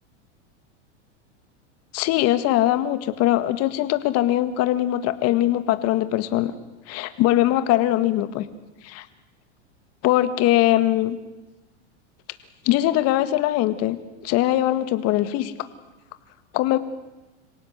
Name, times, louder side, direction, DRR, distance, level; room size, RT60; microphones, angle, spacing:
voice 1, 1.9-6.5 6.9-8.4 8.8-9.1 10.0-11.2 12.7-14.0 14.2-15.5 16.5-16.8, left 14 dB, 45° left, 11 dB, 1.9 m, -21 dB
26.5 x 17.5 x 8.2 m, 1.1 s
supercardioid pair, 125°, 35 cm